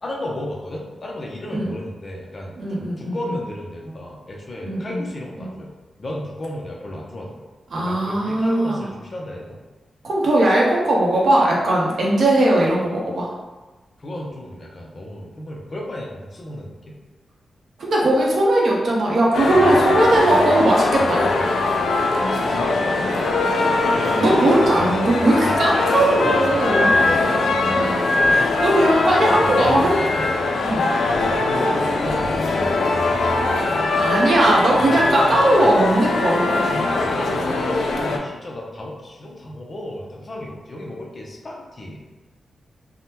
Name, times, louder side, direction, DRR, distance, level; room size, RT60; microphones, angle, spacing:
voice 1, 0.0-5.7 6.0-7.4 7.8-9.6 14.0-17.0 22.5-23.3 23.9-24.9 25.2-27.8 29.3-29.8 30.1-30.3 31.1-32.7 36.9-42.0, left 1 dB, 35° left, -2 dB, 0.5 m, -33 dB
voice 2, 2.6-3.2 4.6-5.0 5.4-5.5 7.7-8.8 10.0-13.3 17.8-21.3 24.2-26.9 28.3-30.0 30.6-30.9 33.9-36.8, right 1 dB, 60° right, -3 dB, 0.7 m, -19 dB
sound 1, 19.3-38.2, left 2 dB, 85° left, 0.4 m, -21 dB
3.5 x 2.1 x 2.8 m, 1.2 s
wide cardioid pair, 140°, 0 cm